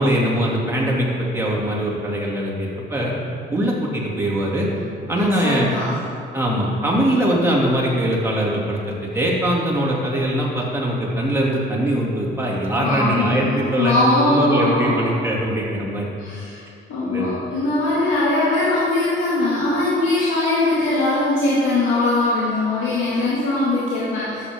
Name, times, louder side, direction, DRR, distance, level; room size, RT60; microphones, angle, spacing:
voice 1, 0.0-3.1 3.5-4.7 5.1-5.7 6.3-14.0 14.2-16.1 17.0-17.3, right 1 dB, 10° right, -4 dB, 2.6 m, -21 dB
voice 2, 5.4-5.9 12.8-15.0 16.2-16.6 16.9-24.4, left 2 dB, 90° left, -9 dB, 2.1 m, -21 dB
12.5 x 7.8 x 3.7 m, 2.4 s
cardioid pair, 90°, 20 cm